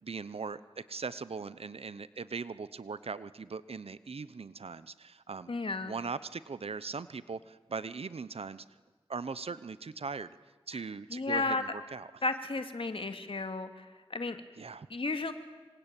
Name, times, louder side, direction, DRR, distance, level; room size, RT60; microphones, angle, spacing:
voice 1, 0.0-8.6 9.1-10.4 10.7-12.2 14.6-14.9, right 5 dB, 90° right, 15 dB, 0.8 m, -40 dB
voice 2, 5.5-5.9 11.1-11.6 12.2-13.8 14.1-14.4 14.9-15.3, left 3 dB, 65° left, 8 dB, 2.3 m, -33 dB
26.0 x 26.0 x 9.0 m, 1.3 s
wide cardioid pair, 70°, 10 cm